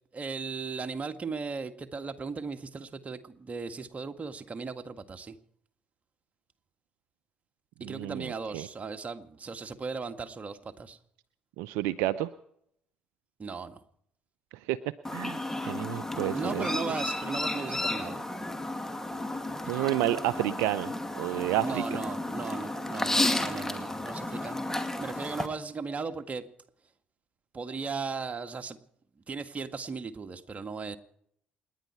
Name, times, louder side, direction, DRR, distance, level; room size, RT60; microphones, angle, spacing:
voice 1, 0.1-5.4 7.8-11.0 13.4-13.8 16.1-18.3 21.6-26.4 27.5-28.8 29.3-31.0, right 4 dB, 35° right, 7 dB, 1.9 m, -37 dB
voice 2, 7.8-8.7 11.6-12.3 14.7-14.8 15.1-16.7 19.6-21.8, right 15 dB, 70° right, 14 dB, 0.6 m, -30 dB
Chirp tweet, 15.0-25.5, left 1 dB, 10° left, 2.4 m, -32 dB
28.5 x 11.0 x 4.6 m, 0.70 s
hypercardioid pair, 50°, 4 cm